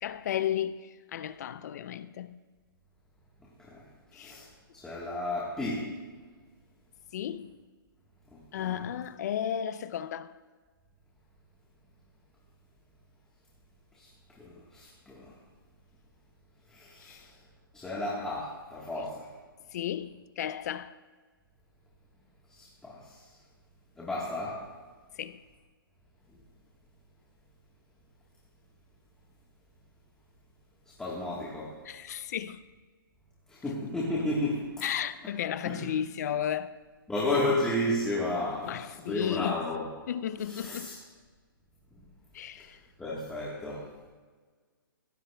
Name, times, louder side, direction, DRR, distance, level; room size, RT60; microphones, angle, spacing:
voice 1, 0.0-2.4 4.1-4.4 7.1-7.5 8.5-10.3 17.0-17.3 19.7-20.9 25.2-25.4 31.8-32.6 34.8-36.8 38.6-39.6 40.1-41.0 42.3-42.8, left 10 dB, 45° left, 0.5 m, -34 dB
voice 2, 4.1-5.9 8.3-8.8 14.0-14.1 14.4-15.3 16.7-17.3 17.7-19.3 22.5-23.3 24.0-24.6 30.9-31.8 33.5-34.8 35.6-35.9 37.1-39.9 40.5-41.0 42.6-42.7 43.0-43.9, left 1 dB, 5° left, 1.4 m, -33 dB
16.5 x 15.0 x 2.3 m
hypercardioid pair, 155°, 12 cm